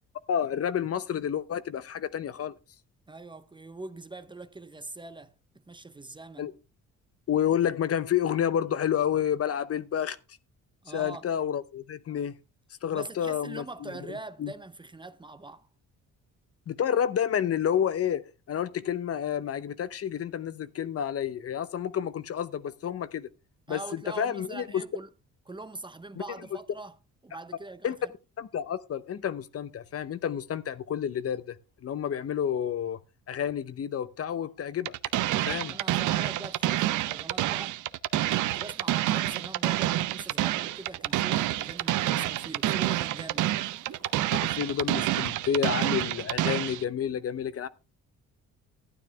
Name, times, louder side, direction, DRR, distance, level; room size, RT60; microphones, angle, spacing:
voice 1, 0.3-2.6 6.4-6.5 7.3-10.2 10.9-12.3 12.8-13.9 14.4-14.5 16.7-23.3 23.7-24.8 27.8-28.0 28.4-31.6 31.8-33.0 33.3-34.9 35.4-35.7 44.4-47.7, left 9 dB, 50° left, 0.8 m, -29 dB
voice 2, 3.1-6.5 10.8-11.3 12.9-15.7 23.7-25.1 25.5-27.0 27.2-27.9 35.6-37.8 38.4-43.5, right 2 dB, 15° right, 0.7 m, -43 dB
sound 1, 34.8-46.8, right 14 dB, 80° right, 0.6 m, -28 dB
sound 2, 40.3-45.6, right 8 dB, 55° right, 1.4 m, -52 dB
12.0 x 9.3 x 3.4 m
cardioid pair, 90°, 30 cm